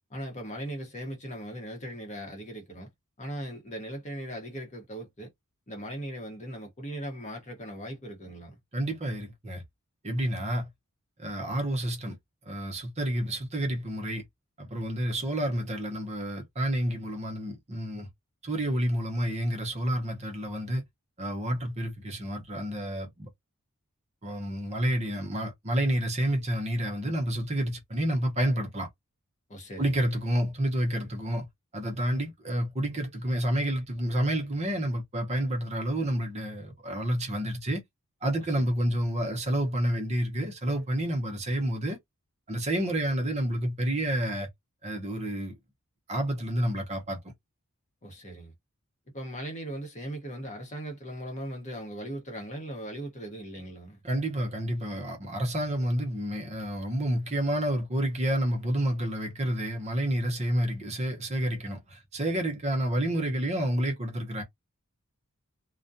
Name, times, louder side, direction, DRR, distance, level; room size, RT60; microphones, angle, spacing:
voice 1, 0.1-2.9 3.2-5.3 5.7-8.6 29.5-30.0 48.0-48.5 49.1-54.0, right 1 dB, 30° left, 0.9 m, -39 dB
voice 2, 8.7-9.6 10.0-10.7 11.2-12.2 12.5-14.2 14.6-18.1 18.4-20.8 21.2-23.3 24.2-28.9 29.8-31.5 31.7-37.8 38.2-42.0 42.5-44.5 44.8-45.5 46.1-47.2 54.0-64.4, right 1 dB, 30° right, 0.8 m, -29 dB
2.4 x 2.2 x 2.6 m
head